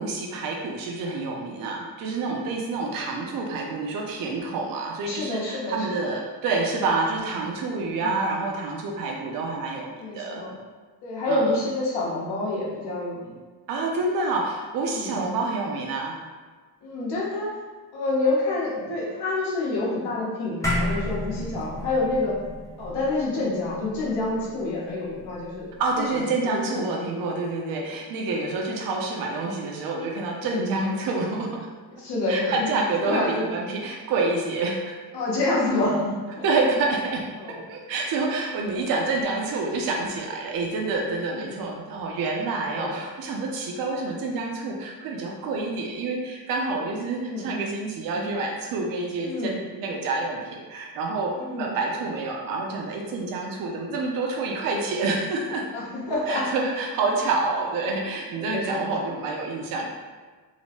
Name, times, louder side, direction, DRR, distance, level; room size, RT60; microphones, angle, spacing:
voice 1, 0.0-10.5 11.3-11.6 13.7-16.2 25.8-31.7 32.3-35.0 36.4-55.7 56.3-59.9, right 3 dB, 60° right, 0 dB, 0.5 m, -28 dB
voice 2, 2.8-3.1 5.1-6.0 7.8-8.2 10.0-10.5 11.0-13.4 14.9-15.1 16.8-17.5 17.9-22.4 22.8-26.8 27.8-27.9 30.4-30.7 32.0-32.7 33.0-33.5 35.1-36.4 37.3-37.6 41.4-41.5 42.6-42.9 47.2-47.5 49.2-49.6 51.3-51.7 55.7-56.4 58.4-58.9, left 2 dB, 80° left, -5 dB, 1.0 m, -28 dB
sound 1, 20.6-25.3, left 1 dB, 10° left, 0.3 m, -31 dB
2.9 x 2.0 x 2.9 m, 1.4 s
cardioid pair, 155°, 39 cm